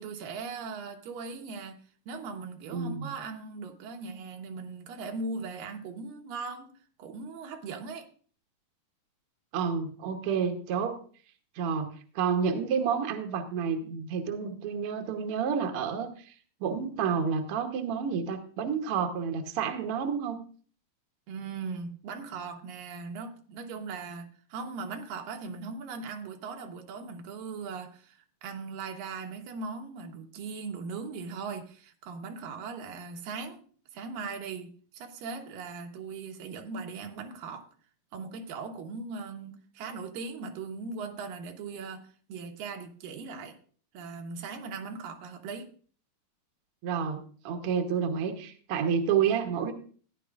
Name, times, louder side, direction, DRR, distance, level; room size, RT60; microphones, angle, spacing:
voice 1, 0.0-1.8 2.1-6.7 7.0-8.1 21.3-33.6 33.9-37.7 38.1-43.6 43.9-45.7, right 4 dB, 90° right, 4 dB, 2.9 m, -39 dB
voice 2, 2.7-3.1 9.5-11.0 11.5-16.3 16.6-20.4 46.8-49.7, right 6 dB, 70° right, 5 dB, 1.4 m, -30 dB
15.0 x 10.5 x 2.5 m, 0.43 s
omnidirectional pair, 3.9 m